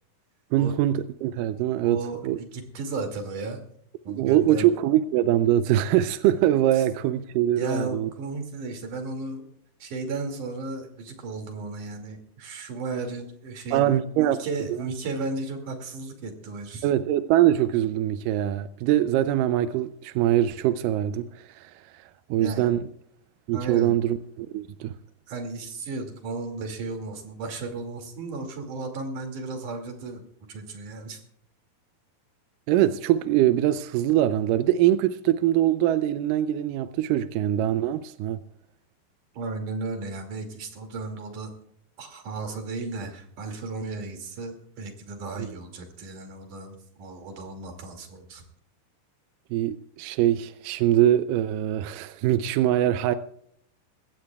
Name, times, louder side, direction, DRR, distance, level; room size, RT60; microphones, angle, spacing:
voice 1, 0.5-2.0 2.2-2.4 4.1-8.1 13.7-14.4 16.8-21.7 22.3-22.8 23.5-24.9 32.7-38.4 49.5-53.1, right 12 dB, 80° right, 2.0 m, -23 dB
voice 2, 1.8-3.7 4.1-4.7 6.7-6.9 7.6-9.4 9.8-16.9 22.4-22.7 23.5-24.0 25.3-30.2 30.5-31.2 39.3-41.5 42.0-48.4, right 3 dB, 60° right, 3.8 m, -34 dB
22.0 x 16.5 x 2.3 m
omnidirectional pair, 4.3 m